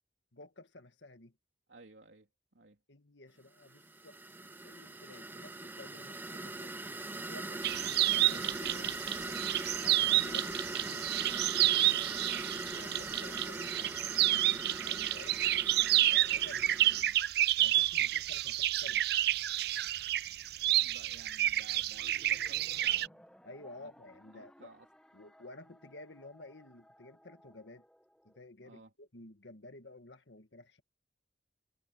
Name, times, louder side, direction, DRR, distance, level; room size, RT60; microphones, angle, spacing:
voice 1, 0.3-1.3 2.9-6.7 7.2-7.6 8.1-8.8 9.8-11.1 11.7-14.0 14.4-15.6 16.0-17.2 17.6-19.0 23.4-24.7 25.1-27.9 28.2-30.8, left 2 dB, 75° left, 1.8 m, -52 dB
voice 2, 1.7-2.8 7.5-9.4 20.8-23.2 23.7-23.9 24.3-24.9 28.6-28.9, right 2 dB, 80° right, 3.1 m, -56 dB
sound 1, 3.7-17.0, right 2 dB, 10° right, 0.9 m, -41 dB
sound 2, 7.6-23.1, right 14 dB, 60° right, 0.4 m, -30 dB
sound 3, 21.9-28.4, equal, 5° left, 1.6 m, -60 dB
head